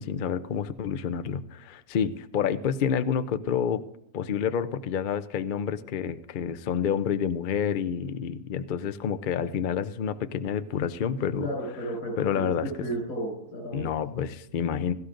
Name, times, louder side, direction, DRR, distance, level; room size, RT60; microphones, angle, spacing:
voice 1, 0.0-3.8 4.1-11.5 12.2-12.9 13.7-14.9, left 8 dB, 70° left, 12 dB, 0.4 m, -28 dB
voice 2, 11.4-13.9, right 1 dB, 85° left, -2 dB, 6.5 m, -33 dB
19.0 x 13.0 x 2.5 m, 0.78 s
omnidirectional pair, 1.6 m